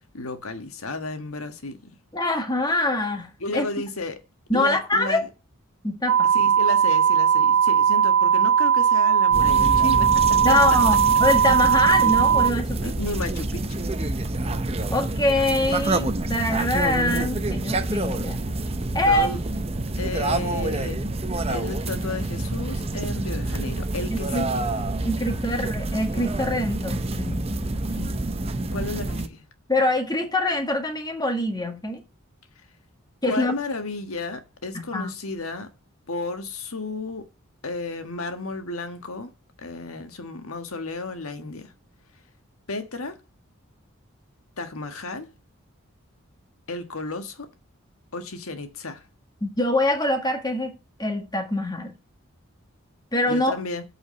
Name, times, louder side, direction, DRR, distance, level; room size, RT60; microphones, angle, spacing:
voice 1, 0.1-1.8 3.4-4.2 4.5-5.3 6.3-10.6 12.8-13.6 19.1-19.4 20.0-21.0 21.4-24.6 28.7-29.4 33.2-35.7 36.1-37.3 37.6-39.3 39.6-41.7 42.7-43.2 44.6-45.3 46.7-47.5 48.1-49.0 53.2-53.8, left 3 dB, 90° left, 1.5 m, -33 dB
voice 2, 2.1-3.7 4.5-5.3 5.8-6.3 10.4-12.9 14.9-18.4 18.9-19.3 24.1-24.5 25.0-27.5 27.9-28.1 29.7-32.0 33.2-33.5 34.9-35.1 49.4-50.7 51.0-51.9 53.1-53.5, left 1 dB, 20° left, 1.8 m, -24 dB
sound 1, 6.1-12.5, right 8 dB, 80° right, 0.4 m, -18 dB
sound 2, 9.3-29.3, right 2 dB, 30° right, 0.7 m, -27 dB
8.5 x 4.9 x 7.5 m
head